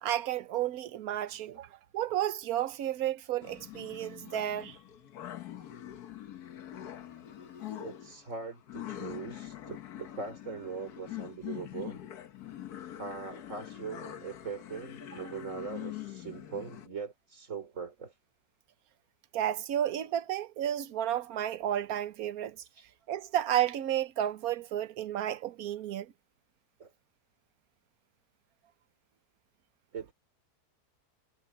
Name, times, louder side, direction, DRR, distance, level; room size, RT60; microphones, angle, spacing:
voice 1, 0.0-1.7 1.9-4.8 19.3-22.6 23.1-26.1, right 11 dB, 70° right, 1.3 m, -32 dB
sound 1, 3.4-16.9, left 12 dB, 75° left, 1.5 m, -44 dB
voice 2, 7.8-12.0 13.0-18.2 22.6-22.9 26.8-26.9 29.9-30.1, right 5 dB, 50° right, 3.4 m, -41 dB
omnidirectional pair, 1.7 m